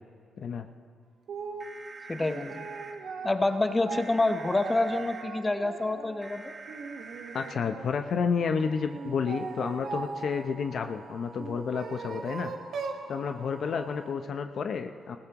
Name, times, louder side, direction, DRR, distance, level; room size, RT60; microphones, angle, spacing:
sound 1, 1.3-1.7 2.2-6.2 6.6-8.2 8.9-10.5 11.4-13.1, right 4 dB, 75° right, 1.2 m, -39 dB
sound 2, 1.6-2.9 3.9-5.2 6.2-7.5 8.5-14.1, right 4 dB, 45° right, 1.8 m, -48 dB
voice 1, 2.1-2.7 3.2-6.5, left 2 dB, 25° left, 9 dB, 0.8 m, -27 dB
voice 2, 7.3-12.5 13.1-15.2, left 6 dB, 65° left, 7 dB, 0.6 m, -30 dB
20.0 x 15.5 x 3.0 m, 2.1 s
cardioid pair, 70°, 0 cm